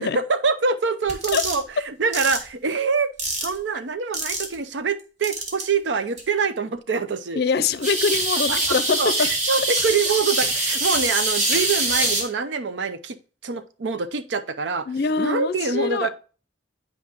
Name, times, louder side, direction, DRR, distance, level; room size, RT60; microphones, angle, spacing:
voice 1, 0.3-3.1 3.4-7.4 8.5-8.6 9.0-9.1 9.5-13.2 13.4-14.9 15.2-16.1, right 5 dB, 85° right, 11 dB, 0.6 m, -25 dB
sound 1, 1.1-1.6 2.1-2.4 3.2-3.6 4.1-4.5 5.2-5.6 6.2-6.3 7.8-12.2, right 2 dB, 40° right, 1.8 m, -24 dB
voice 2, 7.4-9.0 14.9-16.1, left 5 dB, 60° left, 14 dB, 0.5 m, -23 dB
9.4 x 4.9 x 2.9 m, 0.36 s
head